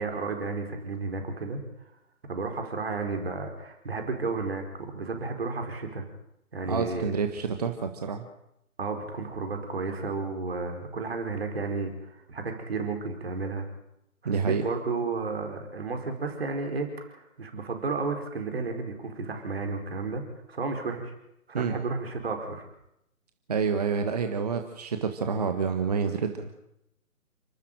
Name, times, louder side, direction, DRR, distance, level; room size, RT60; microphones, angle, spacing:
voice 1, 0.0-1.6 2.3-6.1 6.5-7.1 8.8-13.7 14.2-20.2 20.5-21.1 21.5-22.7, right 4 dB, 45° right, 4 dB, 4.8 m, -32 dB
voice 2, 6.7-8.2 14.2-14.6 21.5-21.7 23.5-26.5, right 5 dB, 25° right, 7 dB, 1.4 m, -28 dB
30.0 x 13.0 x 9.1 m, 0.82 s
figure-of-eight pair, 145°, 43 cm